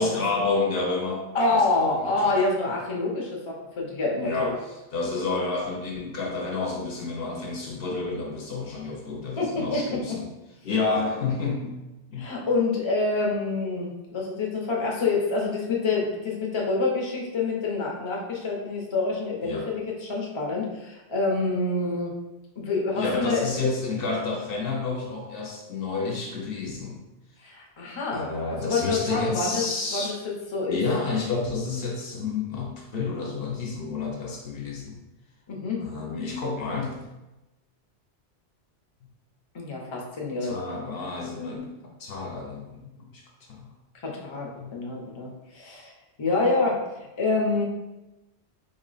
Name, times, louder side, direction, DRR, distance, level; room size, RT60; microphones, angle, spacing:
voice 1, 0.0-2.4 2.7-2.8 4.2-4.5 4.9-10.3 10.6-11.8 12.1-12.4 19.4-19.7 23.0-27.0 28.1-30.2 30.7-35.0 35.8-37.1 40.4-43.2 43.5-43.7 44.5-44.7, left 3 dB, 65° left, 0 dB, 0.8 m, -30 dB
voice 2, 1.3-4.5 9.4-10.2 12.2-22.1 22.6-23.4 27.4-30.8 35.5-35.9 39.5-40.6 44.0-45.3 45.5-45.9 46.2-46.8 47.2-47.6, left 3 dB, 35° left, -2 dB, 0.6 m, -27 dB
3.7 x 2.1 x 3.8 m, 1.0 s
omnidirectional pair, 1.1 m